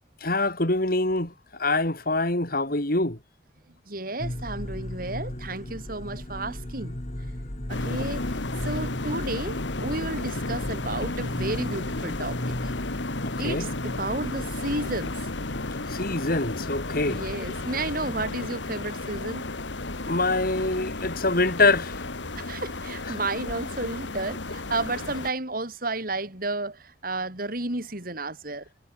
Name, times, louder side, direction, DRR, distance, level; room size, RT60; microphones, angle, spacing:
voice 1, 0.2-1.3 1.6-3.2 13.2-13.7 15.9-17.2 20.0-22.0, left 2 dB, 50° left, 3.5 m, -25 dB
voice 2, 3.9-7.0 7.7-8.2 8.6-12.6 13.4-15.3 15.9-16.0 17.0-19.5 22.4-28.6, right 2 dB, 50° right, 4.6 m, -32 dB
sound 1, 4.2-22.6, left 1 dB, 35° left, 2.1 m, -37 dB
sound 2, 7.7-25.3, left 2 dB, 85° left, 2.0 m, -33 dB
head